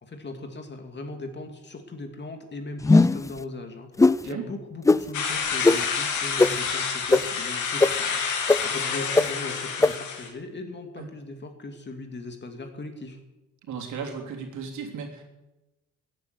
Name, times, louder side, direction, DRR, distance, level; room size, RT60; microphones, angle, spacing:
voice 1, 0.0-8.2 8.6-13.2, left 2 dB, 35° left, 5 dB, 2.7 m, -38 dB
sound 1, 2.8-3.3 4.0-4.2 4.9-5.0 5.6-5.8 6.4-6.5 7.1-7.2 7.8-7.9 8.5-8.6 9.2-9.3 9.8-9.9, left 3 dB, 10° left, 0.4 m, -16 dB
sound 2, 5.1-10.3, left 6 dB, 80° left, 2.7 m, -28 dB
voice 2, 13.6-15.2, right 6 dB, 75° right, 2 dB, 3.4 m, -35 dB
14.5 x 8.9 x 9.7 m, 1.0 s
cardioid pair, 90°, 30 cm